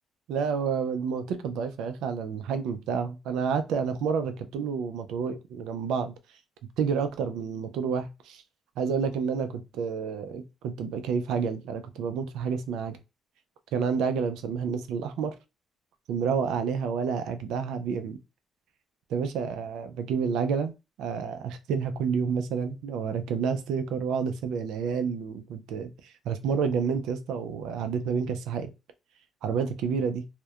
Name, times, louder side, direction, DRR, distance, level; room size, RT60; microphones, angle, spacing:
voice 1, 0.3-6.1 6.8-8.4 8.8-13.0 13.7-15.4 16.1-18.2 19.1-20.7 21.0-28.7 29.4-30.2, right 6 dB, 90° right, 0.3 m, -29 dB
2.7 x 2.1 x 2.3 m
cardioid pair, 90°, 0 cm